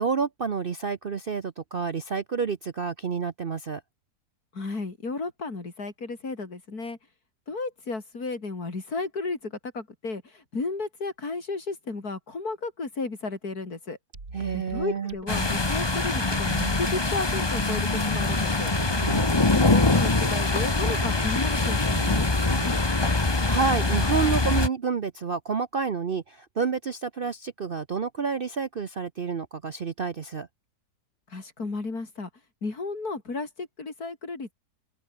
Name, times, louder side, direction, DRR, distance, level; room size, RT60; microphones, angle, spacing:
voice 1, 0.0-3.8 14.3-15.1 18.9-19.4 22.9-30.5, right 5 dB, 45° right, 0.8 m, -29 dB
voice 2, 4.5-7.0 7.5-14.0 14.5-18.7 19.5-22.8 31.3-32.3 32.6-34.5, left 3 dB, 65° left, 4.3 m, -33 dB
sound 1, 14.1-22.8, right 3 dB, 65° right, 4.7 m, -42 dB
sound 2, 15.3-24.7, left 2 dB, 15° left, 1.2 m, -24 dB
open air
omnidirectional pair, 1.7 m